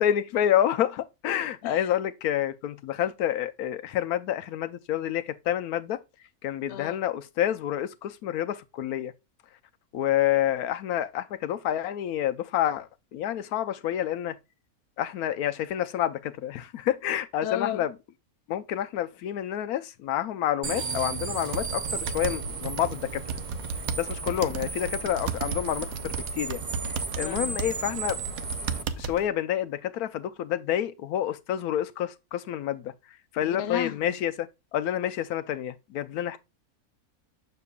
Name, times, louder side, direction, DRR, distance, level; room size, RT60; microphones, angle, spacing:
voice 1, 0.0-6.0 6.4-9.1 9.9-14.4 15.0-17.9 18.5-23.2 24.0-26.6 26.9-28.2 29.0-32.9 33.3-36.4, left 11 dB, 80° left, 1.1 m, -28 dB
voice 2, 17.4-17.8 27.2-27.6 33.4-34.2, left 11 dB, 55° left, 0.8 m, -34 dB
sound 1, 20.6-28.8, right 5 dB, 45° right, 0.6 m, -35 dB
sound 2, 21.5-29.3, right 5 dB, 70° right, 1.1 m, -35 dB
6.8 x 6.6 x 2.3 m
omnidirectional pair, 1.6 m